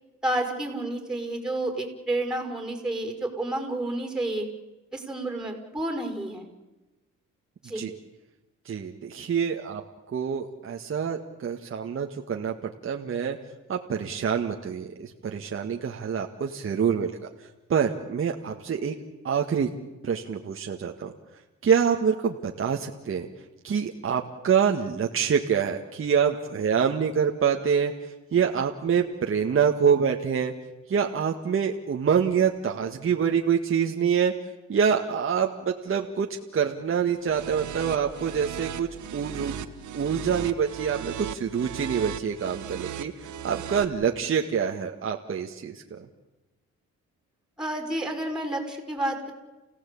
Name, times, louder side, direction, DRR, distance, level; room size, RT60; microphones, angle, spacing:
voice 1, 0.2-4.5 4.9-6.5 7.6-7.8 47.6-49.3, right 1 dB, ahead, 5 dB, 5.7 m, -30 dB
voice 2, 8.7-9.8 10.1-13.4 13.7-17.1 17.7-19.0 19.2-19.7 20.0-21.1 21.6-23.3 23.6-30.5 30.9-34.3 34.7-36.3 36.5-39.5 39.9-46.1, right 7 dB, 45° right, 2 dB, 1.8 m, -26 dB
sound 1, 37.2-43.8, right 10 dB, 75° right, 1.6 m, -37 dB
29.5 x 16.5 x 8.6 m, 1.1 s
cardioid pair, 90°, 30 cm